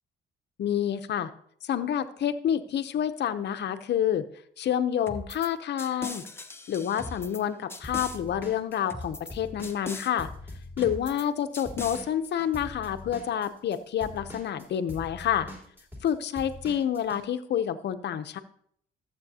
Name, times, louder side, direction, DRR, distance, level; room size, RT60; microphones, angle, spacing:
voice 1, 0.6-1.3 1.6-4.2 4.6-6.3 6.7-10.3 10.8-15.5 16.0-18.4, left 9 dB, 60° left, 10 dB, 0.7 m, -28 dB
sound 1, 5.1-5.5 5.8-7.4 7.7-8.2 8.9-9.3 9.6-10.1 10.8-11.3 11.5-12.0, left 2 dB, 10° left, 0.7 m, -39 dB
Drum kit / Drum, 7.8-11.4 11.7-17.2, left 1 dB, 10° right, 3.4 m, -43 dB
14.5 x 7.6 x 2.8 m, 0.65 s
cardioid pair, 90°, 20 cm